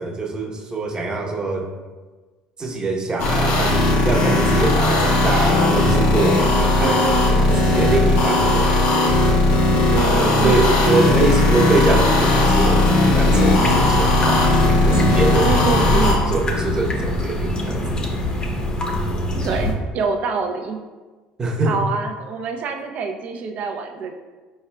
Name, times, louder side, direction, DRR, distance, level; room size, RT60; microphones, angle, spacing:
voice 1, 0.0-1.7 2.6-3.8 4.0-7.0 7.6-9.2 10.4-14.5 14.8-18.1 21.4-21.8, right 2 dB, 25° right, 0 dB, 0.9 m, -23 dB
sound 1, 3.2-16.1, left 2 dB, 75° left, 1.1 m, -17 dB
voice 2, 6.8-7.8 9.9-10.8 15.4-16.4 19.4-20.8 21.6-24.1, right 5 dB, 55° right, 4 dB, 0.6 m, -26 dB
sound 2, 13.5-19.7, left 1 dB, 25° left, 0.8 m, -24 dB
4.7 x 4.4 x 2.2 m, 1.3 s
supercardioid pair, 85°, 3 cm